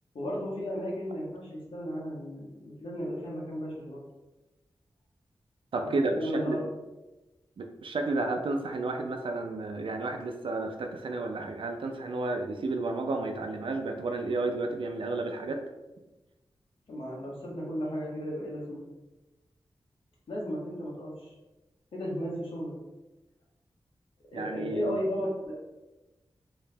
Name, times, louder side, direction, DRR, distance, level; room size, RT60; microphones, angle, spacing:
voice 1, 0.1-4.0 5.8-6.6 16.9-18.8 20.3-21.3 21.9-22.7 24.3-25.5, equal, 90° left, -4 dB, 1.2 m, -34 dB
voice 2, 5.7-6.6 7.6-15.6 24.3-25.0, right 2 dB, 70° right, 4 dB, 0.5 m, -32 dB
3.2 x 2.8 x 3.3 m, 1.1 s
wide cardioid pair, 95°, 9 cm